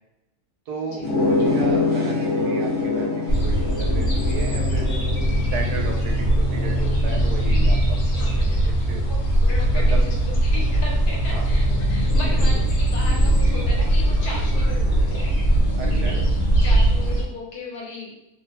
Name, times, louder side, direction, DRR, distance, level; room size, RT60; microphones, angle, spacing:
voice 1, 0.7-4.9 5.5-8.1 8.3-8.5 8.9-9.0 9.7-10.0 11.3-11.5 15.8-16.2, right 4 dB, 85° right, 0 dB, 1.2 m, -34 dB
sound 1, 1.0-6.3, left 3 dB, 35° right, 1.2 m, -25 dB
sound 2, 3.3-17.2, right 1 dB, 50° left, 1.1 m, -20 dB
voice 2, 9.4-15.3 16.6-18.2, left 2 dB, 75° left, -3 dB, 1.3 m, -36 dB
3.1 x 2.1 x 2.9 m, 0.91 s
omnidirectional pair, 1.7 m